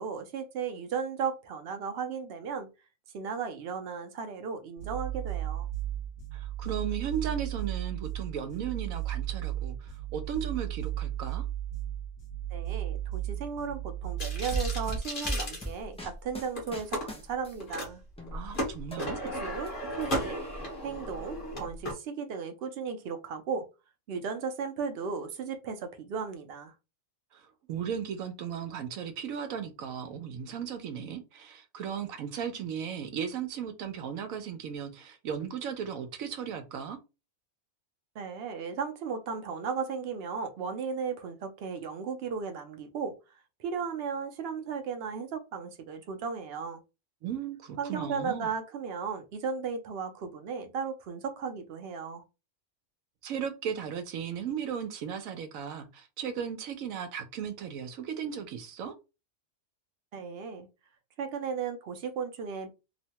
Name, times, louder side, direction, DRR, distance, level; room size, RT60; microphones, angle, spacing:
voice 1, 0.0-2.7 3.1-5.7 12.5-18.0 19.0-20.4 20.8-23.7 24.1-26.7 38.2-43.1 43.6-46.8 47.8-52.2 60.1-60.7 61.2-62.7, right 6 dB, 60° right, 0.7 m, -35 dB
sound 1, 4.8-15.0, right 12 dB, 80° left, 1.2 m, -35 dB
voice 2, 6.3-11.4 18.3-19.3 27.3-37.0 47.2-48.5 53.2-58.9, right 8 dB, 85° right, 1.0 m, -36 dB
sound 2, 14.2-16.2 16.6-17.1 17.6-17.9 18.2-21.9, equal, 45° left, 1.0 m, -35 dB
sound 3, 14.5-17.8 18.2-19.7 20.0-20.9, equal, 10° left, 0.3 m, -38 dB
3.0 x 2.1 x 2.8 m
omnidirectional pair, 1.4 m